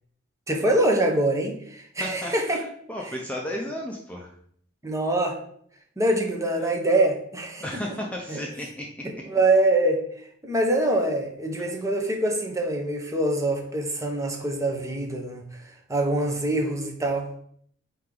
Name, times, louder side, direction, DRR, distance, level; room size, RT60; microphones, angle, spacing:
voice 1, 0.5-2.6 4.8-5.4 6.0-7.8 8.3-8.5 9.0-17.3, right 1 dB, 15° right, 2 dB, 0.9 m, -24 dB
voice 2, 2.0-4.3 7.6-9.2 11.6-11.7, left 1 dB, 5° left, -1 dB, 0.7 m, -34 dB
8.3 x 2.9 x 3.9 m, 0.63 s
head